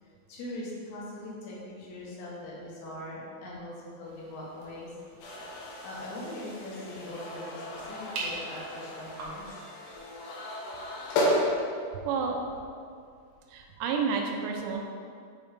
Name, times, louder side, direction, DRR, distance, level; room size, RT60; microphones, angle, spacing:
voice 1, 0.0-5.0 5.8-9.6, left 1 dB, 65° left, -5 dB, 1.9 m, -41 dB
sound 1, 4.0-9.5, right 3 dB, 70° right, 2.0 m, -44 dB
sound 2, 5.2-11.5, left 1 dB, 85° left, 3.1 m, -34 dB
voice 2, 12.0-12.4 13.5-14.8, right 5 dB, 90° right, 1 dB, 2.8 m, -30 dB
7.8 x 3.1 x 4.9 m, 2.3 s
omnidirectional pair, 4.9 m